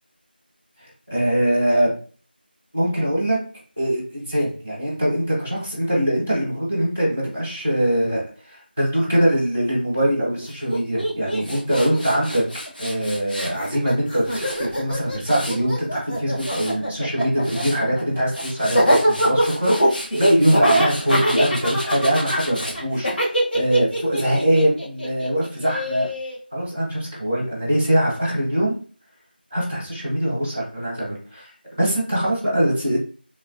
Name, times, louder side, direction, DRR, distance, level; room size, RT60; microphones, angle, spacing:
voice 1, 1.1-1.9 2.7-3.4 3.8-12.4 12.8-23.1 23.5-26.1 26.5-28.8 29.5-31.5 31.8-33.0, right 1 dB, 10° left, -8 dB, 0.4 m, -22 dB
Laughter, 10.4-10.5 10.7-13.0 13.3-26.4, equal, 80° left, 1.4 m, -23 dB
Tools, 11.4-13.6 14.0-15.7 16.1-16.7 17.2-17.8 18.2-22.8, equal, 55° left, 0.7 m, -34 dB
3.1 x 2.1 x 2.5 m, 0.40 s
figure-of-eight pair, 175°, 6 cm